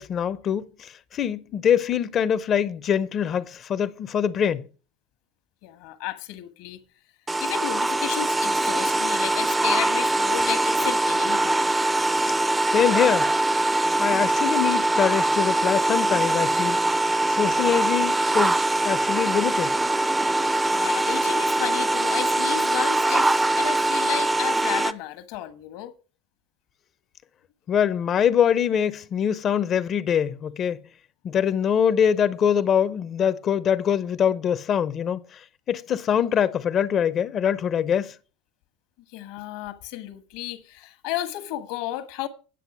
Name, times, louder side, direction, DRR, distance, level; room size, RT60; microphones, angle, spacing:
voice 1, 0.0-4.6 12.6-13.3 14.0-16.8 17.2-19.8 27.7-30.8 31.2-38.1, left 8 dB, 40° left, 0.7 m, -24 dB
voice 2, 5.6-6.8 7.4-11.7 20.7-25.9 39.1-42.3, left 13 dB, 70° left, 1.4 m, -33 dB
sound 1, 7.3-24.9, right 2 dB, 10° right, 0.6 m, -22 dB
10.0 x 6.5 x 6.1 m
supercardioid pair, 100°, 0 cm